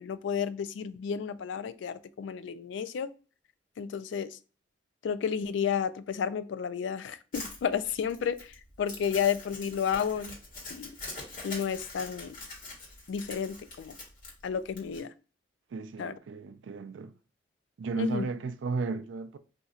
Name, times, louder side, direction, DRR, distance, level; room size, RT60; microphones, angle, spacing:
voice 1, 0.0-3.1 3.8-4.3 5.0-10.3 10.7-11.0 11.4-12.4 13.1-13.9 14.4-15.1 16.0-16.1 18.0-18.3, left 7 dB, 80° left, 0.3 m, -32 dB
Crumpling crinkling, 7.3-15.0, left 2 dB, 45° left, 1.3 m, -44 dB
voice 2, 15.7-17.1 17.8-19.4, right 4 dB, 85° right, 0.4 m, -34 dB
2.6 x 2.3 x 4.1 m
head